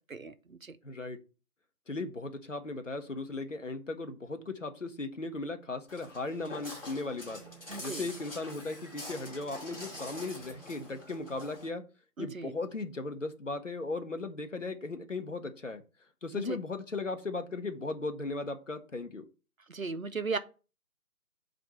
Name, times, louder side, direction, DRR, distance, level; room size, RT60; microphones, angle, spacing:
voice 1, 0.1-0.7 7.7-8.0 12.2-12.5 16.3-16.6 19.7-20.4, right 4 dB, 60° right, 0.7 m, -36 dB
voice 2, 0.8-1.2 1.9-7.4 7.8-11.8 12.2-15.8 16.2-19.3, left 3 dB, 55° left, 0.9 m, -37 dB
Walk footsteps, 5.9-11.7, left 1 dB, 35° left, 2.3 m, -45 dB
7.6 x 2.6 x 5.6 m
figure-of-eight pair, 180°, 46 cm